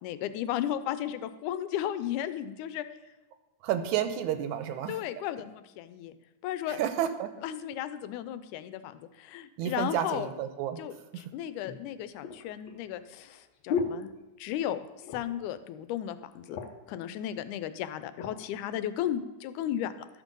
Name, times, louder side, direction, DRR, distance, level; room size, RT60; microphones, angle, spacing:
voice 1, 0.0-2.9 4.9-6.2 6.4-6.8 7.4-10.3 10.8-14.1 14.4-14.8 15.1-16.6 16.9-20.1, left 11 dB, 90° left, 13 dB, 2.1 m, -35 dB
voice 2, 3.6-5.0 6.8-7.3 9.6-10.8 11.1-11.2, right 10 dB, 80° right, 9 dB, 2.1 m, -30 dB
sound 1, 10.7-10.8 11.6-14.7 15.0-15.5 15.8-15.9 16.2-16.9 17.6-18.4 19.0-19.2, left 5 dB, 75° left, 1.1 m, -37 dB
12.0 x 6.2 x 5.3 m, 1.0 s
omnidirectional pair, 3.5 m